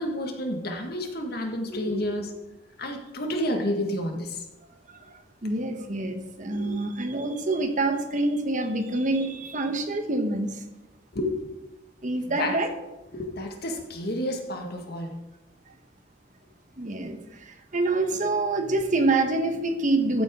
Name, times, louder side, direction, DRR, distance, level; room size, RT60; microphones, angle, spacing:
voice 1, 0.0-2.3 2.8-4.4 6.5-6.6 11.1-11.5 12.3-12.6 13.1-15.1, left 1 dB, 60° left, 3 dB, 1.8 m, -30 dB
voice 2, 5.4-10.6 12.0-12.7 16.8-20.2, right 2 dB, 45° right, 6 dB, 1.2 m, -26 dB
14.5 x 8.3 x 3.7 m, 1.0 s
head